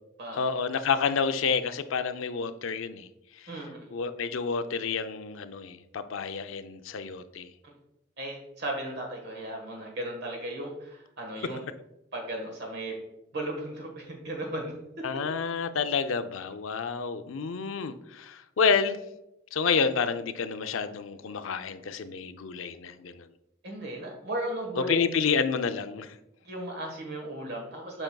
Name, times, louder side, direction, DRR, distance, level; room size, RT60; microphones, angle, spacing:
voice 1, 0.3-3.1 3.3-3.5 3.9-7.5 15.0-19.0 19.5-23.3 24.9-26.2, left 5 dB, 85° left, 10 dB, 0.5 m, -29 dB
voice 2, 3.5-3.9 7.6-7.7 8.2-11.6 12.1-13.0 13.3-14.7 23.6-25.0 26.4-28.0, right 1 dB, 60° right, 1 dB, 1.3 m, -36 dB
7.7 x 5.9 x 2.3 m, 0.86 s
head